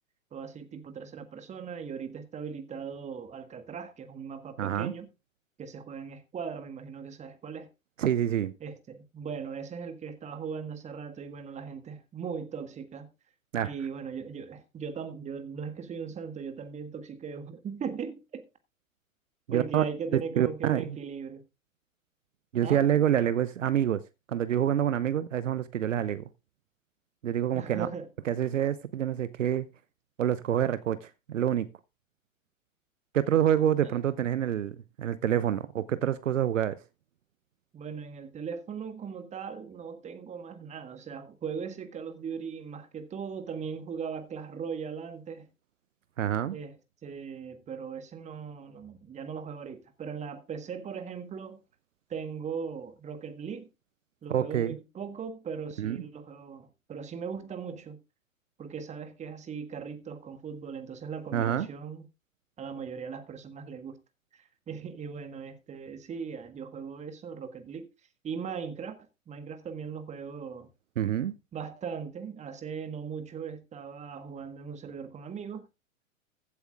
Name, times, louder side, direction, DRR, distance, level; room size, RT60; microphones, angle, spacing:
voice 1, 0.3-5.1 5.6-7.7 8.6-13.1 13.6-18.5 19.5-21.4 22.6-22.8 27.5-28.1 33.8-33.9 37.7-45.5 46.5-46.7 47.0-51.6 52.1-53.7 54.2-58.0 58.6-62.1 62.6-64.0 64.3-67.9 68.2-69.0 69.3-70.7 71.5-75.6, right 6 dB, 15° right, 1.6 m, -39 dB
voice 2, 4.6-4.9 8.0-8.5 13.5-13.7 19.5-19.8 20.1-21.0 22.5-24.0 24.3-26.2 27.2-27.9 28.3-29.7 30.2-31.7 33.1-36.8 46.2-46.6 54.3-54.7 55.8-56.0 61.3-61.7 71.0-71.3, right 10 dB, 65° right, 0.9 m, -27 dB
15.0 x 8.2 x 3.6 m
figure-of-eight pair, 105°, 41 cm